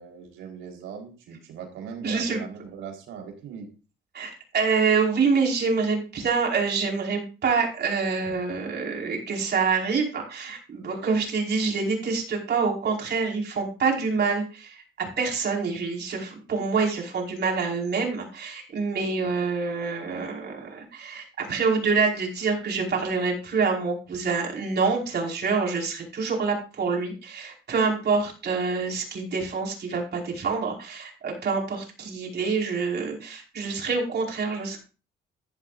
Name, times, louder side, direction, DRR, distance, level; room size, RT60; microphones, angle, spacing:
voice 1, 0.0-3.7, right 6 dB, 85° right, 1 dB, 4.4 m, -39 dB
voice 2, 2.0-2.4 4.1-34.8, right 4 dB, 55° right, 0 dB, 5.2 m, -26 dB
14.0 x 12.0 x 2.6 m, 0.34 s
cardioid pair, 90°, 20 cm